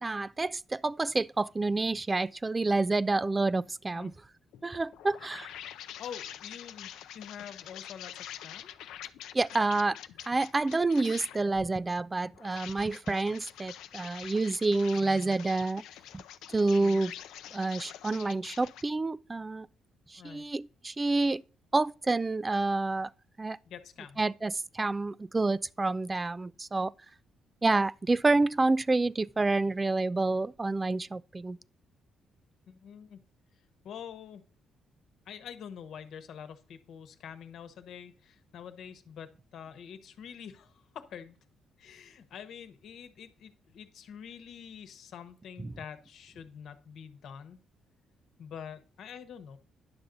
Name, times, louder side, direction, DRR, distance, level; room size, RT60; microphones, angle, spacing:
voice 1, 0.0-4.1 4.6-5.5 9.3-10.0 10.3-15.8 16.1-16.2 16.5-17.1 17.5-19.7 20.1-21.4 21.7-23.1 23.4-23.6 24.2-26.9 27.6-31.6 45.6-45.7, right 3 dB, 20° right, 0.3 m, -28 dB
sound 1, 4.5-11.5 12.3-18.8, left 11 dB, 90° left, 0.5 m, -46 dB
voice 2, 6.0-8.7 16.8-17.0 20.2-20.5 23.7-24.2 32.7-33.2 33.8-34.4 35.3-41.4 41.8-47.6 48.4-49.6, left 8 dB, 70° left, 1.1 m, -46 dB
10.5 x 6.8 x 3.9 m
cardioid pair, 90°, 0 cm